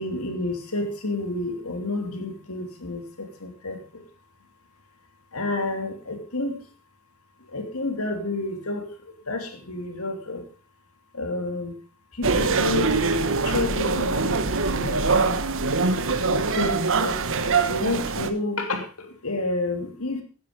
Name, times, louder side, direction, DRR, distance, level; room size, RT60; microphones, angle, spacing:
voice 1, 0.0-4.0 5.3-6.6 7.4-10.5 11.1-11.8 12.1-15.4 16.2-17.2 17.6-20.2, left 2 dB, 70° left, 6 dB, 3.1 m, -30 dB
sound 1, 12.2-18.3, right 4 dB, 65° right, 1.3 m, -23 dB
14.5 x 10.0 x 5.2 m, 0.36 s
head